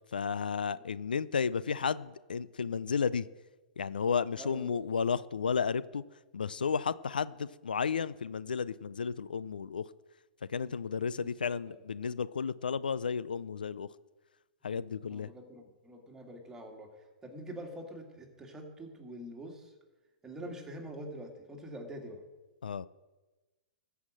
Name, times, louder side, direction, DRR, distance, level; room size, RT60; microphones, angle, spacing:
voice 1, 0.1-3.3 3.8-6.0 6.3-9.9 10.5-13.9 14.6-15.3 22.6-22.9, left 6 dB, 85° left, 18 dB, 0.4 m, -33 dB
voice 2, 4.4-4.8 10.6-10.8 11.1-11.8 14.6-16.9 17.2-19.7 20.2-22.2, right 1 dB, 10° right, 2 dB, 2.2 m, -46 dB
14.0 x 5.7 x 7.7 m, 1.2 s
hypercardioid pair, 120°, 5 cm